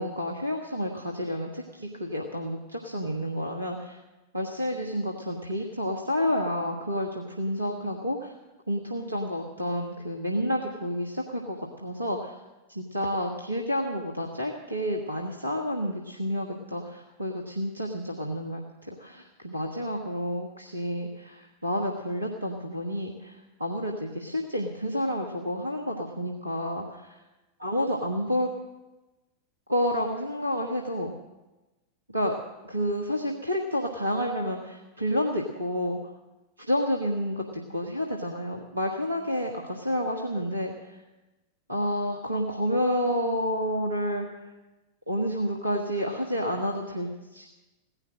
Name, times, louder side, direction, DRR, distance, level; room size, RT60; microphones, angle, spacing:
voice 1, 0.0-4.0 4.3-8.3 8.7-12.3 12.7-18.6 18.9-27.2 27.6-28.5 29.7-31.1 32.1-32.4 32.6-36.0 36.6-40.9 41.7-44.5 45.1-47.5, equal, 80° right, 1 dB, 1.4 m, -30 dB
17.0 x 10.5 x 7.6 m, 1.1 s
figure-of-eight pair, 90°, 0 cm